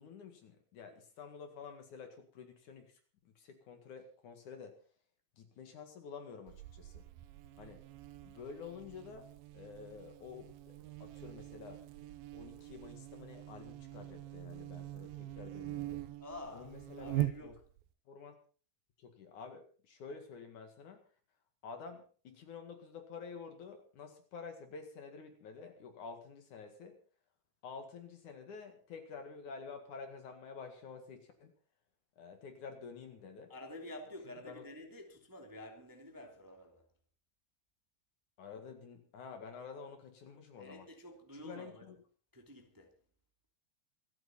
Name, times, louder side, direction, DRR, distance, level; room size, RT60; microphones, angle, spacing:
voice 1, 0.0-3.0 3.2-4.8 5.4-7.0 7.6-7.8 8.2-11.8 12.3-16.0 16.5-17.6 18.1-18.4 19.0-21.1 21.6-27.0 27.6-31.5 32.2-33.5 34.4-34.6 38.4-40.9 41.3-42.0, left 5 dB, 60° left, 3.1 m, -49 dB
Buzz, 6.5-17.9, right 15 dB, 75° right, 2.5 m, -43 dB
voice 2, 16.2-17.6 33.5-36.9 40.6-41.9 42.3-42.9, left 1 dB, 5° right, 2.1 m, -49 dB
27.0 x 9.1 x 4.3 m
omnidirectional pair, 4.3 m